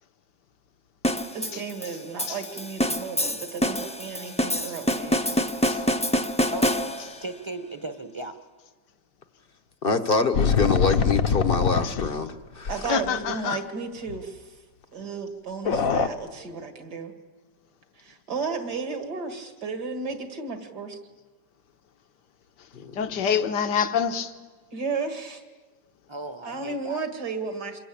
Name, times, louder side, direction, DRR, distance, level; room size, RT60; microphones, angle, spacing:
sound 1, 1.0-7.3, equal, 5° left, 0.7 m, -26 dB
voice 1, 1.3-5.4 12.7-14.6 14.9-17.1 18.0-21.0 24.7-25.4 26.4-27.8, right 4 dB, 65° right, 2.8 m, -33 dB
voice 2, 6.5-6.9 7.2-8.4 26.1-27.0, right 2 dB, 20° right, 1.0 m, -36 dB
voice 3, 9.8-12.7 22.7-23.0, left 4 dB, 40° left, 1.0 m, -25 dB
sound 2, 10.3-12.3 12.7-12.8 13.0-13.1 14.1-14.2 15.7-16.1, left 6 dB, 55° left, 1.3 m, -23 dB
voice 4, 12.9-13.6 23.0-24.3, left 7 dB, 70° left, 1.8 m, -26 dB
27.0 x 21.5 x 8.7 m
omnidirectional pair, 1.9 m